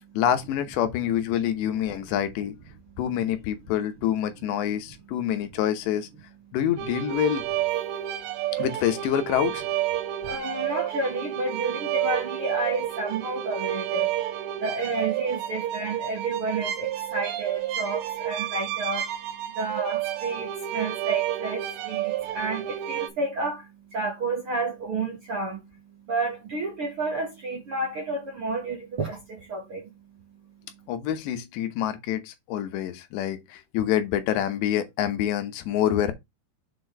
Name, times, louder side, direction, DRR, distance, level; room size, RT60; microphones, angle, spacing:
voice 1, 0.1-2.6 3.0-6.1 6.5-7.5 8.6-9.7 30.9-36.1, left 10 dB, 80° left, 3.3 m, -26 dB
sound 1, 6.8-23.1, right 12 dB, 90° right, 3.4 m, -30 dB
voice 2, 7.9-8.5 10.0-30.3 30.7-30.9, right 3 dB, 50° right, 1.8 m, -31 dB
7.4 x 4.6 x 4.7 m
omnidirectional pair, 5.0 m